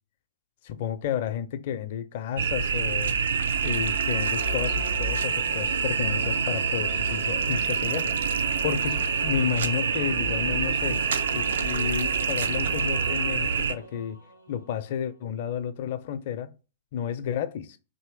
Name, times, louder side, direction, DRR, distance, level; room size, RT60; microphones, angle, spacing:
voice 1, 0.6-3.2 3.6-8.1 8.6-11.0 11.3-14.2 14.5-16.5 16.9-17.8, left 9 dB, 50° left, 0.4 m, -31 dB
sound 1, 2.4-13.7, right 6 dB, 65° right, 0.3 m, -26 dB
Singing / Musical instrument, 3.5-14.8, right 2 dB, 80° right, 1.0 m, -41 dB
3.0 x 2.7 x 4.5 m
figure-of-eight pair, 105°, 0 cm